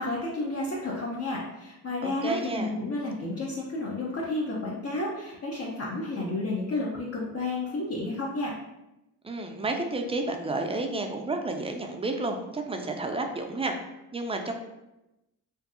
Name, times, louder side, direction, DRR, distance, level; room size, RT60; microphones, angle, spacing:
voice 1, 0.0-8.5, left 2 dB, 40° left, -3 dB, 0.5 m, -31 dB
voice 2, 2.0-2.7 9.2-13.8 14.1-14.5, right 2 dB, 15° right, 4 dB, 0.3 m, -31 dB
2.6 x 2.3 x 2.4 m, 0.93 s
cardioid pair, 60°, 37 cm